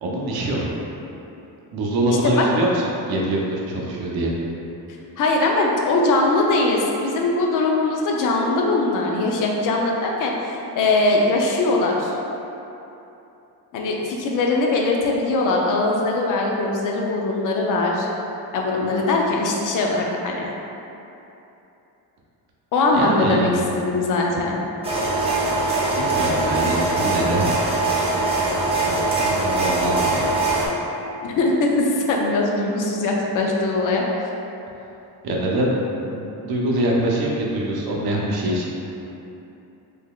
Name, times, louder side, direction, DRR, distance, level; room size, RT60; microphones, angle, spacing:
voice 1, 0.0-0.7 1.7-4.4 22.9-23.6 26.0-27.5 28.7-30.3 35.2-38.7, right 1 dB, 65° right, -3 dB, 0.7 m, -24 dB
voice 2, 5.2-12.2 13.7-18.1 18.5-20.5 22.7-23.5 23.8-24.6 31.2-34.2, left 2 dB, 55° left, -1 dB, 0.5 m, -21 dB
sound 1, 24.8-30.7, right 2 dB, 15° right, 0.4 m, -22 dB
3.7 x 3.4 x 2.3 m, 2.9 s
cardioid pair, 175°, 40 cm